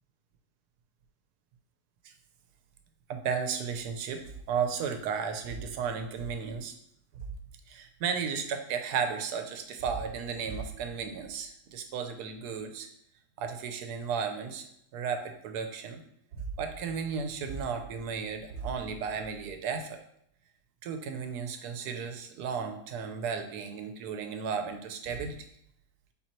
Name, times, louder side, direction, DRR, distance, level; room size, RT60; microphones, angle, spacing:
voice 1, 3.1-6.7 7.7-12.9 13.4-14.6 14.9-16.0 16.3-20.0 20.8-25.5, right 6 dB, 80° right, 6 dB, 1.1 m, -34 dB
4.3 x 3.8 x 3.0 m, 0.72 s
omnidirectional pair, 1.7 m